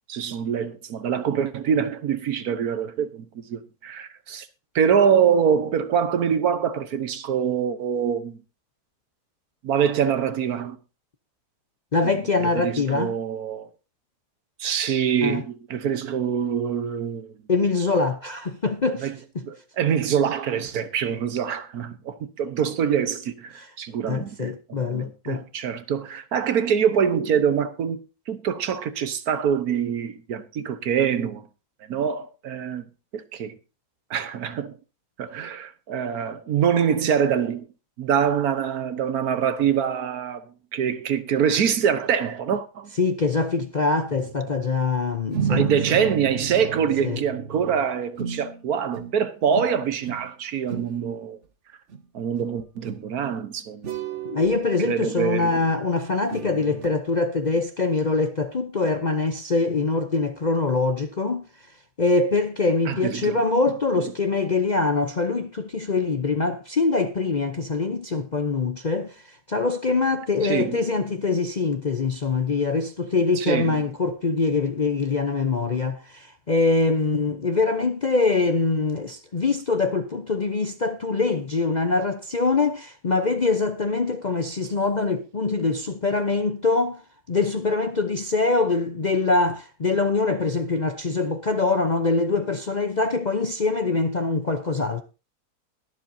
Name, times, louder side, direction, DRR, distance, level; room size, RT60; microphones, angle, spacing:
voice 1, 0.1-4.5 4.7-8.4 9.6-10.8 12.4-13.7 14.6-17.3 19.0-19.2 19.4-31.5 31.9-32.8 33.1-33.6 34.1-34.8 35.2-37.7 38.0-40.4 40.7-42.9 45.5-51.4 52.1-53.9 54.8-55.5 62.9-63.4 64.0-64.1 70.4-70.8 73.4-73.8, right 7 dB, 70° right, 1.4 m, -25 dB
voice 2, 11.9-13.1 15.2-15.4 17.5-19.1 19.3-19.5 23.6-23.7 24.1-25.4 43.0-45.7 47.0-47.2 54.3-61.5 62.0-87.0 87.3-95.0, left 3 dB, 40° left, 0.6 m, -24 dB
sound 1, 44.1-44.7 45.3-48.6 48.9-49.2 49.5-50.3 50.5-51.0 51.9-52.0 52.4-52.5 52.8-53.1 53.8-54.5 55.2-56.9 57.5-57.6, right 7 dB, 50° right, 1.2 m, -33 dB
22.0 x 7.4 x 2.7 m
omnidirectional pair, 1.7 m